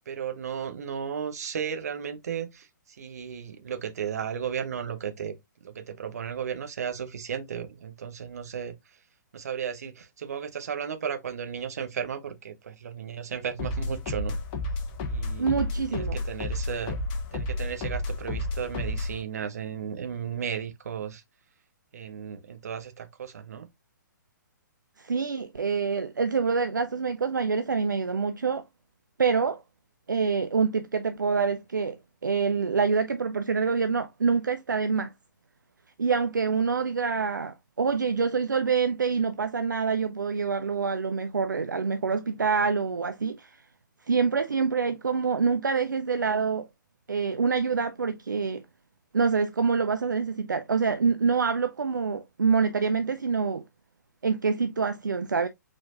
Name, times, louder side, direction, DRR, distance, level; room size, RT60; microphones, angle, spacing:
voice 1, 0.1-5.3 5.6-8.7 9.3-14.4 15.1-15.5 15.9-17.0 17.3-21.2 21.9-23.7, right 7 dB, 50° right, 1.0 m, -34 dB
sound 1, 13.6-19.2, left 2 dB, 30° left, 1.0 m, -31 dB
voice 2, 15.4-16.2 25.0-28.6 29.2-29.6 30.1-35.1 36.0-43.5 44.1-46.7 47.1-48.6 49.1-53.6 54.2-55.5, right 5 dB, 70° right, 0.5 m, -26 dB
4.7 x 4.1 x 2.4 m
figure-of-eight pair, 125°, 11 cm